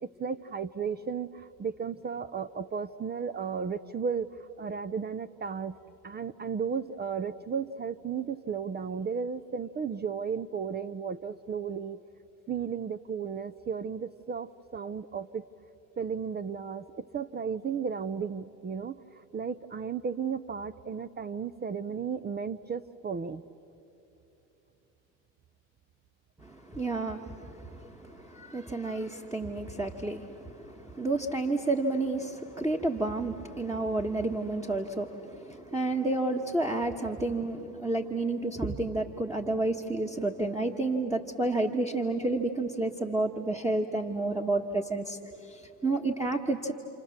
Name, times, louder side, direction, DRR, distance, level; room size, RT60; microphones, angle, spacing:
voice 1, 0.0-5.8 6.0-12.0 12.5-15.4 16.0-23.4, right 6 dB, 25° right, 13 dB, 0.6 m, -34 dB
voice 2, 26.4-46.7, right 2 dB, 10° right, 2 dB, 1.4 m, -30 dB
29.0 x 28.0 x 7.2 m, 2.9 s
supercardioid pair, 85°, 40 cm